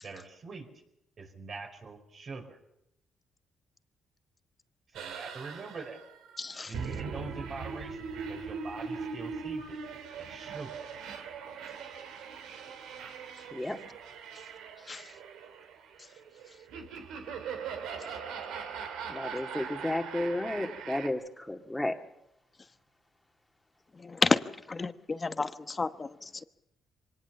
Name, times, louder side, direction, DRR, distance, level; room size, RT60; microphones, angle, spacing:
voice 1, 0.0-0.7 1.2-2.6 4.9-6.0 6.6-9.8 10.2-10.8, right 4 dB, 50° right, 4 dB, 5.0 m, -43 dB
sound 1, 4.9-21.1, right 6 dB, 90° right, 2.5 m, -41 dB
voice 2, 6.4-6.7 14.9-15.0 24.0-24.4 24.7-26.4, left 4 dB, 30° left, 11 dB, 1.1 m, -30 dB
voice 3, 19.1-22.0, left 1 dB, 10° left, 4 dB, 2.1 m, -32 dB
24.5 x 19.0 x 7.1 m, 0.82 s
cardioid pair, 90°, 0 cm